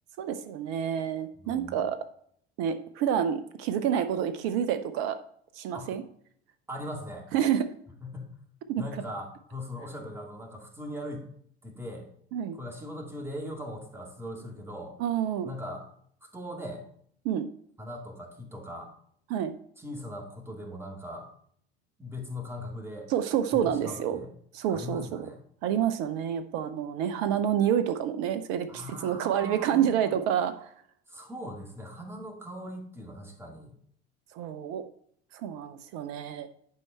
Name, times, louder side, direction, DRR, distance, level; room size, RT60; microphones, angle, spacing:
voice 1, 0.2-2.0 2.6-5.2 5.6-6.0 7.3-7.7 8.7-8.8 12.3-12.6 15.0-15.5 17.2-17.5 19.3-19.5 23.1-24.2 24.5-25.0 25.6-30.7 34.3-34.8 35.4-36.5, right 9 dB, 50° right, 10 dB, 0.7 m, -28 dB
voice 2, 1.4-1.8 5.7-5.9 6.7-7.3 8.0-8.3 8.8-11.3 11.6-12.1 12.5-15.0 15.4-15.9 16.3-16.8 17.8-18.9 19.8-21.3 22.0-23.1 23.5-24.3 24.7-25.4 28.7-30.2 31.1-33.8, left 1 dB, 5° right, 1 dB, 2.3 m, -40 dB
10.5 x 4.7 x 4.4 m, 0.64 s
figure-of-eight pair, 70°, 33 cm